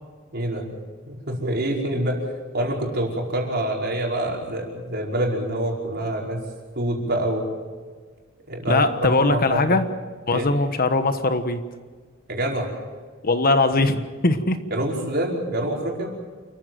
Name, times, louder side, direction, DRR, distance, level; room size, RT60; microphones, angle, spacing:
voice 1, 0.3-0.8 1.1-2.2 2.5-6.4 6.8-7.4 8.5-9.8 10.3-10.5 12.3-12.8 14.7-16.1, right 1 dB, 55° right, -1 dB, 5.3 m, -26 dB
voice 2, 8.7-9.8 10.3-11.6 13.2-14.6, left 2 dB, 45° left, 9 dB, 1.3 m, -20 dB
28.5 x 14.5 x 7.8 m, 1.5 s
head